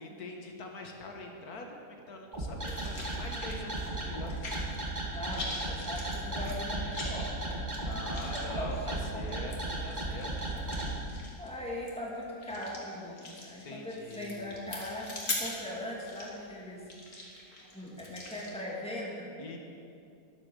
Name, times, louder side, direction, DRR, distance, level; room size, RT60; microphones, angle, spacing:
voice 1, 0.0-4.3 7.9-9.6 9.8-10.5 13.6-14.4 19.4-19.6, left 2 dB, 75° left, 2 dB, 1.8 m, -44 dB
sound 1, 2.3-10.9, right 2 dB, 30° right, 1.7 m, -35 dB
sound 2, 2.6-4.9 5.1-18.5, left 2 dB, 55° left, 2.4 m, -42 dB
voice 2, 5.1-8.0 8.3-9.4 10.9-17.2 17.7-19.3, left 1 dB, 5° left, -4 dB, 2.5 m, -40 dB
12.5 x 11.0 x 6.6 m, 2.6 s
omnidirectional pair, 1.6 m